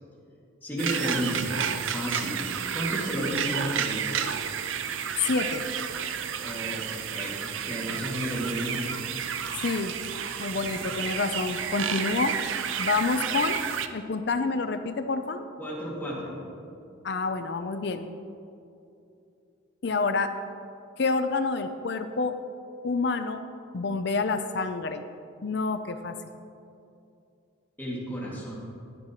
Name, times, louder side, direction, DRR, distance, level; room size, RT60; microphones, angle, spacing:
voice 1, 0.6-1.5 1.8-2.4 2.7-4.1 6.4-9.0 15.6-16.5 27.8-28.6, equal, 10° left, -6 dB, 2.2 m, -32 dB
sound 1, 0.8-13.9, right 7 dB, 75° right, 0.5 m, -31 dB
voice 2, 5.2-5.6 9.6-9.9 10.4-12.3 12.8-13.6 13.9-15.4 17.0-18.1 19.8-20.3 21.0-22.3 22.8-23.4 23.7-25.0 25.4-26.1, left 4 dB, 55° left, 8 dB, 0.5 m, -28 dB
14.5 x 10.5 x 3.0 m, 2.6 s
head